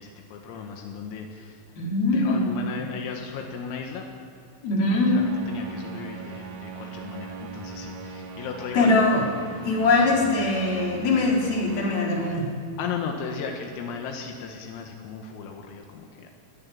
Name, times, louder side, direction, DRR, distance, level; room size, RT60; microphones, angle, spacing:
voice 1, 0.0-4.1 4.9-8.9 10.1-10.3 12.8-16.3, left 6 dB, 85° left, 2 dB, 4.3 m, -36 dB
voice 2, 1.8-2.4 4.6-5.2 8.7-9.2 9.6-12.5, left 2 dB, 50° left, -3 dB, 5.9 m, -22 dB
sound 1, 5.1-12.4, right 4 dB, 70° right, 4.0 m, -39 dB
20.5 x 17.5 x 8.8 m, 2.4 s
omnidirectional pair, 5.9 m